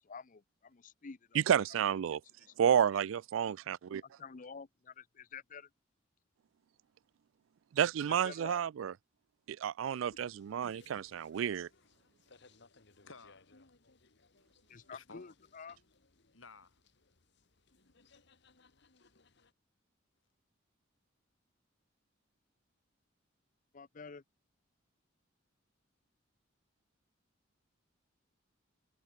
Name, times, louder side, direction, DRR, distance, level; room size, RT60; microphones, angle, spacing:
voice 1, 0.0-1.4 2.5-2.6 3.9-5.7 8.1-8.6 14.7-15.8 23.7-24.2, left 5 dB, 40° left, 0.6 m, -49 dB
voice 2, 1.3-2.2 2.6-4.0 7.7-8.9 9.5-11.7, right 8 dB, 80° right, 0.3 m, -31 dB
sound 1, 10.0-19.5, left 3 dB, 60° left, 2.0 m, -65 dB
voice 3, 13.0-13.6 14.9-15.3 16.3-16.8, left 4 dB, 80° left, 4.4 m, -55 dB
head